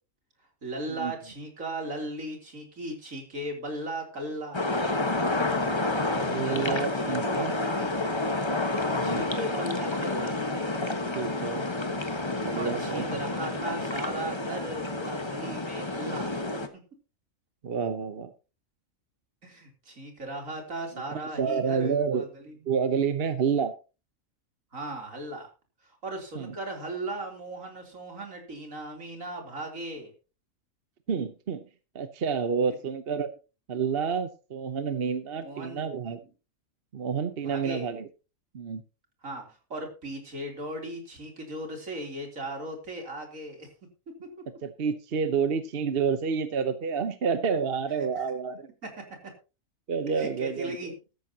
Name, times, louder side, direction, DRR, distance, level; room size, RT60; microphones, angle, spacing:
voice 1, 0.6-4.6 6.1-8.4 9.0-10.4 12.6-16.4 19.4-22.6 24.7-25.5 25.8-30.1 35.4-35.8 37.4-37.9 39.2-43.7 48.2-48.3 48.8-49.3 50.2-50.9, right 1 dB, 70° right, 2 dB, 3.8 m, -37 dB
sound 1, 4.5-16.7, left 2 dB, 20° left, 1.3 m, -29 dB
voice 2, 6.0-7.6 8.9-9.2 11.1-11.7 12.4-13.2 15.5-15.6 17.6-18.3 21.1-22.2 22.7-23.7 26.4-26.5 31.1-31.6 31.9-33.3 33.7-36.2 36.9-38.1 38.5-38.8 44.6-48.7 49.9-50.8, right 6 dB, 50° right, 10 dB, 1.0 m, -29 dB
15.0 x 13.0 x 2.9 m, 0.32 s
omnidirectional pair, 1.4 m